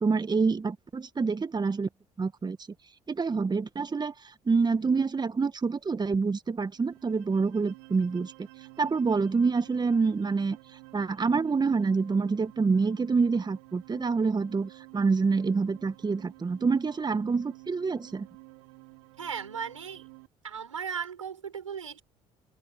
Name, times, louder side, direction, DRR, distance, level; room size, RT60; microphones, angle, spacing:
voice 1, 0.0-1.9 2.2-2.6 3.1-8.3 8.8-10.6 10.9-18.3, right 4 dB, 25° right, 1.8 m, -27 dB
sound 1, 6.7-20.3, right 32 dB, 75° right, 5.4 m, -51 dB
voice 2, 19.2-20.1 20.4-22.0, right 7 dB, 90° right, 4.8 m, -36 dB
hypercardioid pair, 55°, 16 cm